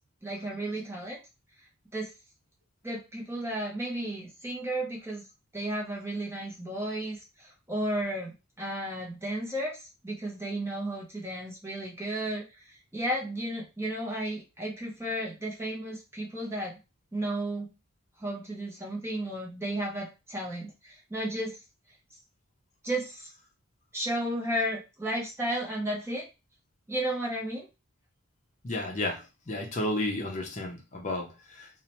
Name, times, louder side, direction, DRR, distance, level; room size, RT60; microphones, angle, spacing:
voice 1, 0.2-1.2 1.9-2.1 2.8-5.2 5.5-16.8 17.1-17.7 18.2-21.6 22.8-23.3 23.9-26.2 26.9-27.7, right 1 dB, 10° right, -2 dB, 0.6 m, -33 dB
voice 2, 28.6-31.7, left 1 dB, 35° left, 1 dB, 0.6 m, -32 dB
2.7 x 2.1 x 2.9 m, 0.27 s
head